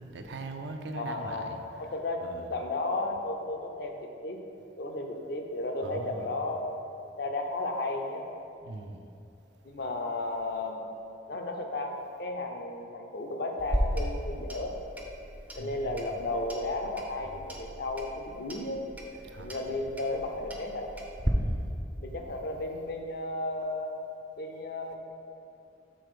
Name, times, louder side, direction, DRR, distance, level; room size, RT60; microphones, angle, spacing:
voice 1, 0.0-1.6 2.2-2.5 5.8-6.3 8.6-9.1 15.6-15.9 19.3-19.6 21.4-21.7, right 2 dB, 70° right, 5 dB, 0.5 m, -41 dB
voice 2, 1.0-1.5 1.8-4.4 4.8-6.6 7.2-8.3 9.6-10.8 11.3-14.7 15.5-18.8 19.4-20.9 22.0-24.0 24.4-25.0, left 2 dB, 60° left, 3 dB, 0.6 m, -34 dB
Clock, 13.6-21.3, equal, 10° right, 0.4 m, -36 dB
6.3 x 3.8 x 4.9 m, 2.7 s
head